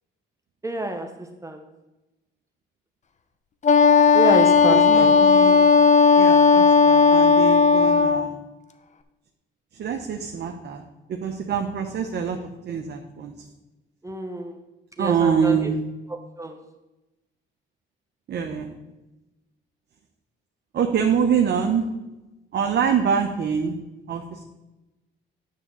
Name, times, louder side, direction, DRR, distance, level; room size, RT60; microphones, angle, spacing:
voice 1, 0.6-1.1 1.4-1.6 4.1-5.1 14.0-14.6 15.0-15.6 16.4-16.6, right 2 dB, 15° right, 4 dB, 0.9 m, -27 dB
Wind instrument woodwind instrument, 3.6-8.3, left 5 dB, 35° left, 0.7 m, -15 dB
voice 2, 4.7-5.7 6.1-8.4 9.7-12.4 12.6-13.5 15.0-15.8 18.3-18.8 20.7-21.9 22.5-23.8 24.1-24.4, right 7 dB, 55° right, 3 dB, 0.9 m, -25 dB
9.3 x 3.6 x 7.0 m, 1.0 s
cardioid pair, 90°, 20 cm